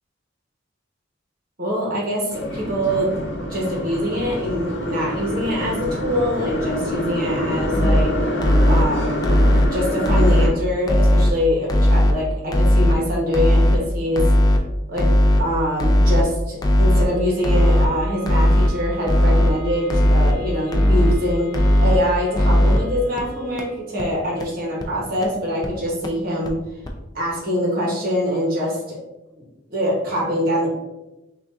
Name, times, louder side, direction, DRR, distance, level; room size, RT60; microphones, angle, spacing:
voice 1, 1.6-3.1 3.5-8.3 8.7-9.2 9.7-14.3 14.9-15.1 15.4-21.5 21.8-26.6 27.1-29.0 29.7-30.7, equal, 50° right, -3 dB, 1.3 m, -24 dB
sound 1, 2.3-10.5, equal, 75° left, 0.9 m, -26 dB
sound 2, 7.6-8.0 8.4-8.8 9.2-9.6 10.0-10.5 10.9-11.3 11.7-12.1 12.5-12.9 13.3-13.8 14.2-14.6 15.0-15.4 15.8-16.2 16.6-17.0 17.4-17.9 18.3-18.7 19.1-19.5 19.9-20.3 20.7-21.1 21.5-22.0 22.3-22.8 23.2-23.3 23.6-23.7 24.0-24.1 24.4-24.5 24.8-24.9 25.2-25.3 25.6-25.7 26.0-26.1 26.4-26.5 26.8-26.9, left 1 dB, 20° left, 0.4 m, -16 dB
sound 3, 16.9-23.9, right 5 dB, 5° right, 1.5 m, -40 dB
6.0 x 2.6 x 2.7 m, 0.99 s
head